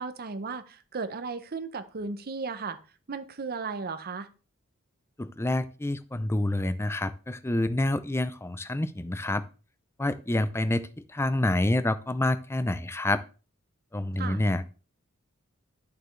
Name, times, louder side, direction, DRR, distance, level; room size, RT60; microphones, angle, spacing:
voice 1, 0.0-2.8 3.1-4.3 14.2-14.4, right 4 dB, 45° right, 10 dB, 0.7 m, -35 dB
voice 2, 5.2-9.4 10.0-13.2 13.9-14.7, left 1 dB, 10° left, 14 dB, 0.5 m, -28 dB
11.5 x 6.7 x 3.2 m, 0.34 s
head